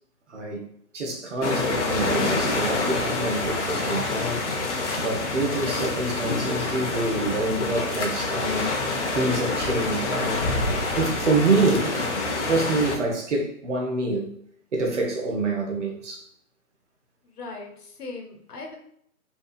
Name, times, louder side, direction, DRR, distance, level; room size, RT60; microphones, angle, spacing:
voice 1, 0.3-0.7 0.9-8.7 9.1-10.6 11.0-12.0 12.5-14.3 14.7-16.3, right 2 dB, 50° right, 0.6 m, -26 dB
sound 1, 1.4-13.0, left 3 dB, 50° left, 0.5 m, -27 dB
voice 2, 17.2-18.8, left 3 dB, 75° left, 0.9 m, -39 dB
2.7 x 2.3 x 2.3 m
figure-of-eight pair, 155°, 46 cm